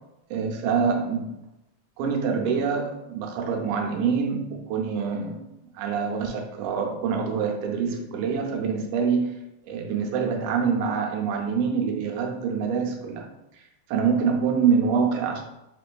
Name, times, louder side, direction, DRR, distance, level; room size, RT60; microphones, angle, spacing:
voice 1, 0.3-1.3 2.0-5.4 5.8-9.3 9.6-13.3 13.9-15.4, right 6 dB, 90° right, 1 dB, 2.1 m, -25 dB
5.8 x 2.5 x 2.2 m, 0.89 s
omnidirectional pair, 3.4 m